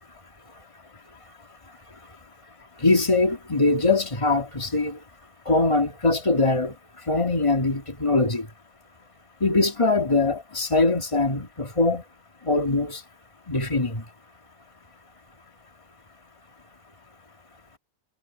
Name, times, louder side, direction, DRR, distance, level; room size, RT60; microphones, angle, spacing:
voice 1, 2.8-5.0 5.5-6.7 7.1-8.5 9.4-12.0 12.4-13.0 13.5-14.0, left 3 dB, 30° left, 2.4 m, -22 dB
omnidirectional pair, 1.1 m